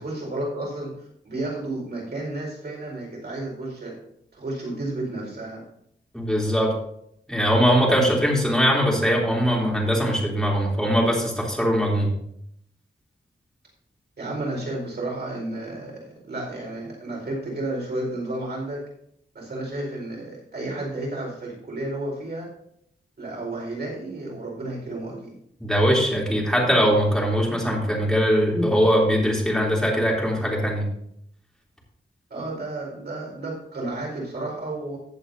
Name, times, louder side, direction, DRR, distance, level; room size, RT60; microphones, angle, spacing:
voice 1, 0.0-4.0 4.3-5.6 14.2-18.8 19.3-22.5 23.2-25.4 32.3-35.0, right 2 dB, 55° right, -2 dB, 4.7 m, -32 dB
voice 2, 6.1-6.7 7.3-12.1 25.6-30.9, equal, 5° left, -3 dB, 3.2 m, -21 dB
15.0 x 7.9 x 2.7 m, 0.73 s
wide cardioid pair, 120°, 20 cm